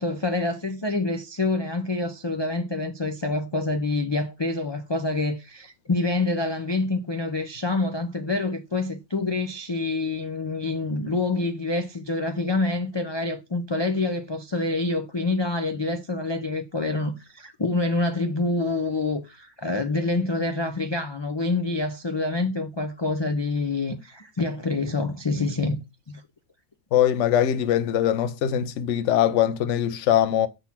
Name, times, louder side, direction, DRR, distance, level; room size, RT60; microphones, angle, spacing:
voice 1, 0.0-25.8, left 2 dB, 45° left, 0.3 m, -27 dB
voice 2, 26.9-30.5, left 10 dB, 60° left, 0.9 m, -22 dB
7.3 x 3.9 x 5.8 m
omnidirectional pair, 1.5 m